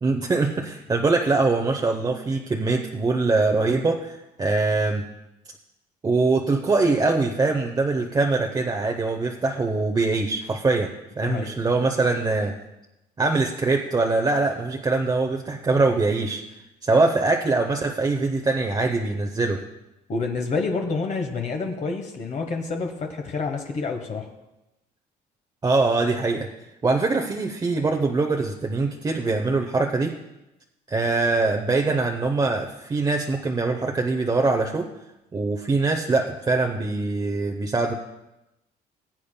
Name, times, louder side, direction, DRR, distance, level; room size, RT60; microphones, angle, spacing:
voice 1, 0.0-5.0 6.0-12.6 13.2-16.4 16.8-19.6 25.6-26.5 26.8-30.1 30.9-34.9 35.3-37.9, right 3 dB, 25° right, 2 dB, 0.7 m, -23 dB
voice 2, 20.1-24.3, left 4 dB, 45° left, 2 dB, 1.1 m, -28 dB
21.0 x 8.4 x 2.2 m, 0.94 s
cardioid pair, 110°, 17 cm